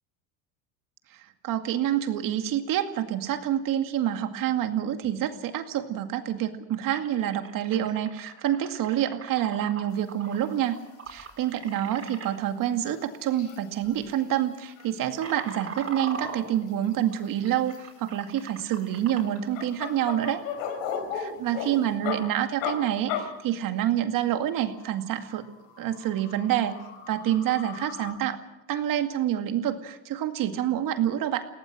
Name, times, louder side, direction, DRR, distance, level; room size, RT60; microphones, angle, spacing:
voice 1, 1.4-10.8 11.1-20.4 21.1-25.5 25.8-26.7 27.1-28.4 28.7-31.5, right 11 dB, 55° right, 7 dB, 2.3 m, -27 dB
sound 1, 6.9-12.3 13.3-13.5 13.8-14.1 14.6-19.4, right 5 dB, 35° right, 5.4 m, -41 dB
sound 2, 10.2-10.4 10.7-10.8 11.1-11.2 11.5-11.6 12.0-12.1 12.5-14.4 14.7-14.9 15.1-16.9 17.3-18.0 18.6-22.2 22.6-22.8 23.1-23.2 24.4-28.1, left 8 dB, 80° left, 4.1 m, -37 dB
21.0 x 18.0 x 7.8 m, 0.98 s
supercardioid pair, 95°, 40 cm